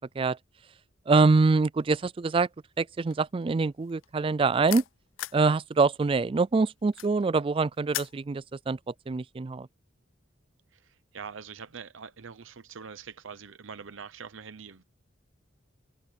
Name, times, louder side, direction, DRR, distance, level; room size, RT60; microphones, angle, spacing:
voice 1, 1.1-2.5 2.8-4.8 5.3-8.8 9.1-9.7, right 4 dB, 25° right, 0.3 m, -24 dB
sound 1, 1.9-2.3 2.6-5.5 5.8-8.2, left 14 dB, 85° left, 0.5 m, -39 dB
voice 2, 10.7-14.8, right 6 dB, 85° right, 0.8 m, -44 dB
head